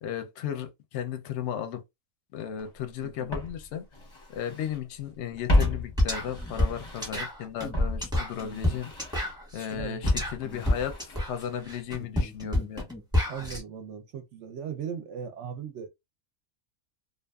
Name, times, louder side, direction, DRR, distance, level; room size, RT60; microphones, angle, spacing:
voice 1, 0.0-1.8 2.3-3.8 4.3-8.9 9.5-12.9, left 9 dB, 65° left, 0.8 m, -35 dB
Walk footsteps, 2.6-2.7 3.3-4.8 5.1-7.3 7.7-11.8 12.0-12.1, left 1 dB, 25° left, 0.7 m, -32 dB
voice 2, 3.0-3.4 9.7-10.0 13.3-15.9, right 7 dB, 65° right, 0.8 m, -38 dB
sound 1, 5.6-5.7 6.0-13.6, left 1 dB, 5° right, 0.9 m, -29 dB
2.5 x 2.4 x 2.3 m
omnidirectional pair, 1.5 m